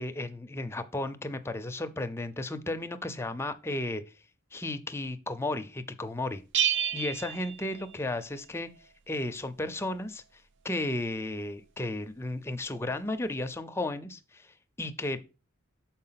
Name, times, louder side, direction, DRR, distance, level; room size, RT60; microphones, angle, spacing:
voice 1, 0.0-4.0 4.5-6.4 6.9-8.7 9.1-15.2, left 2 dB, 10° left, 9 dB, 0.4 m, -34 dB
Bell, 6.5-8.4, right 9 dB, 55° right, 0.3 m, -30 dB
6.5 x 4.6 x 5.6 m, 0.32 s
head